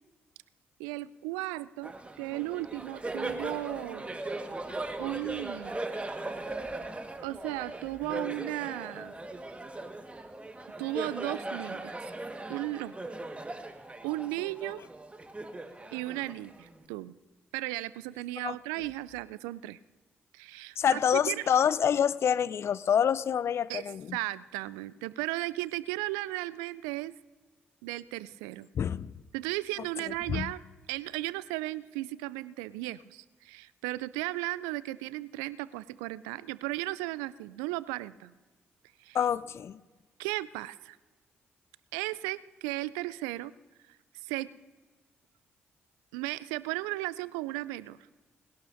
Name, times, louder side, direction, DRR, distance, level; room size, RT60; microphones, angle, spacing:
voice 1, 0.8-4.2 5.0-5.8 7.2-9.1 10.8-12.0 12.5-12.9 14.0-14.8 15.9-17.1 17.5-19.8 20.3-21.4 23.7-23.8 24.1-27.1 27.8-28.7 29.3-30.6 30.9-38.3 39.0-39.2 40.2-41.0 41.9-43.5 44.2-44.5 46.1-48.0, right 18 dB, 75° right, 19 dB, 0.3 m, -35 dB
Laughter, 1.8-16.8, right 2 dB, 20° right, 1.5 m, -39 dB
voice 2, 20.8-24.2 28.8-29.1 30.3-30.5 39.1-39.8, left 8 dB, 50° left, 18 dB, 0.5 m, -27 dB
20.5 x 17.0 x 2.6 m, 1.3 s
hypercardioid pair, 40°, 6 cm